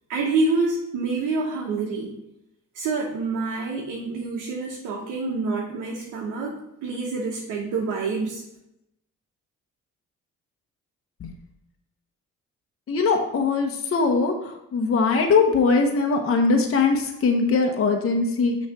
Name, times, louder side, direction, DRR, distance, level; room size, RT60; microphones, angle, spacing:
voice 1, 0.1-2.1 2.7-8.4, right 3 dB, 85° right, -3 dB, 1.1 m, -27 dB
voice 2, 12.9-18.6, left 4 dB, 45° left, 3 dB, 0.9 m, -21 dB
6.4 x 3.2 x 5.8 m, 0.83 s
cardioid pair, 90°, 30 cm